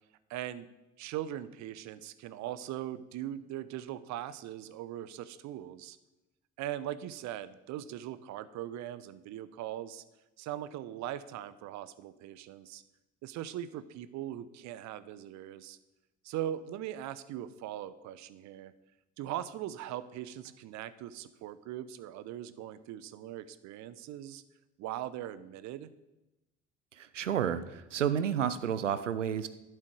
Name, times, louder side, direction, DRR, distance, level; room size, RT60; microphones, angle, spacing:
voice 1, 0.3-0.7 1.0-6.0 6.6-10.0 10.4-12.8 13.2-15.8 16.2-18.7 19.2-24.4 24.8-25.9, right 12 dB, 50° right, 15 dB, 0.7 m, -40 dB
voice 2, 27.0-29.5, right 9 dB, 85° right, 14 dB, 0.6 m, -31 dB
11.5 x 7.7 x 4.7 m, 1.0 s
figure-of-eight pair, 55°, 36 cm